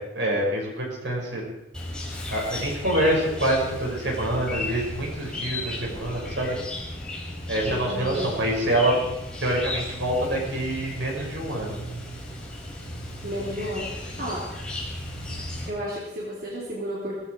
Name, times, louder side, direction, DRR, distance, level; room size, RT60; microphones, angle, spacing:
voice 1, 0.1-1.4 2.3-6.5 7.5-8.9 9.4-11.8, right 1 dB, 75° right, -1 dB, 6.2 m, -26 dB
Chirp tweet, 1.7-15.7, left 1 dB, 5° left, 4.1 m, -35 dB
voice 2, 7.6-8.3 13.2-14.5 15.3-17.1, equal, 50° right, -5 dB, 3.7 m, -33 dB
19.5 x 14.5 x 4.8 m, 0.94 s
head